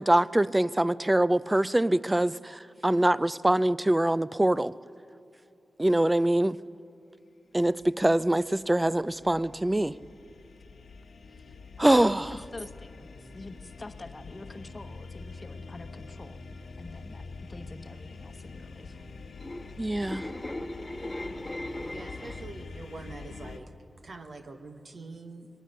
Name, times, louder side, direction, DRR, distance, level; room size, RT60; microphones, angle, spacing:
voice 1, 0.0-4.7 5.8-6.6 7.5-9.9 11.8-12.3 19.8-20.2, right 1 dB, 15° right, 17 dB, 0.4 m, -24 dB
sound 1, 7.7-23.6, left 4 dB, 85° left, 1.3 m, -45 dB
voice 2, 12.5-16.4 16.8-19.1, left 2 dB, 35° left, 9 dB, 1.0 m, -46 dB
sound 2, 19.3-22.7 23.0-23.3, left 1 dB, 20° left, 1.2 m, -38 dB
voice 3, 21.9-23.7 24.0-25.5, right 3 dB, 65° right, 5 dB, 1.3 m, -44 dB
22.5 x 20.0 x 6.6 m, 2.8 s
wide cardioid pair, 75°, 0 cm